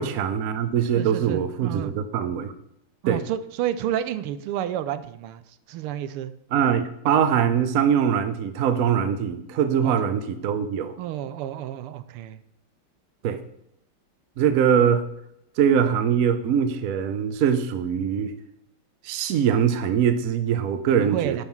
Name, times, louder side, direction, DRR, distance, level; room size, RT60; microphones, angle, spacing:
voice 1, 0.0-2.5 3.1-3.2 6.5-11.0 13.2-13.4 14.4-15.0 15.6-18.3 19.0-21.4, right 8 dB, 70° right, 10 dB, 0.8 m, -22 dB
voice 2, 1.0-1.9 3.0-5.4 5.7-6.3 9.8-10.0 11.0-12.4 20.9-21.4, right 11 dB, 90° right, 13 dB, 1.5 m, -30 dB
9.6 x 5.6 x 4.6 m, 0.77 s
omnidirectional pair, 2.4 m